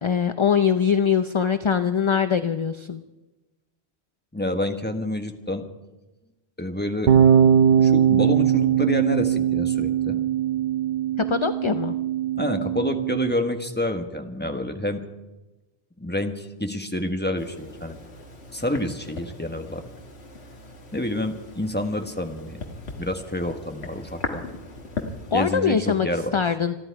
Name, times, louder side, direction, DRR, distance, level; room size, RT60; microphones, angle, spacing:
voice 1, 0.0-3.0 11.3-12.0 25.3-26.1 26.3-26.7, left 6 dB, 40° left, 10 dB, 0.4 m, -22 dB
voice 2, 4.3-5.6 6.6-7.1 7.8-10.2 12.4-15.0 16.0-18.0 18.5-19.8 20.9-22.6 23.0-24.5 25.3-26.4, left 1 dB, 10° left, 5 dB, 1.2 m, -28 dB
sound 1, 7.1-13.3, right 9 dB, 55° right, 0.7 m, -20 dB
sound 2, 17.4-25.5, left 3 dB, 75° left, 1.8 m, -38 dB
27.0 x 11.0 x 4.7 m, 1.1 s
omnidirectional pair, 1.1 m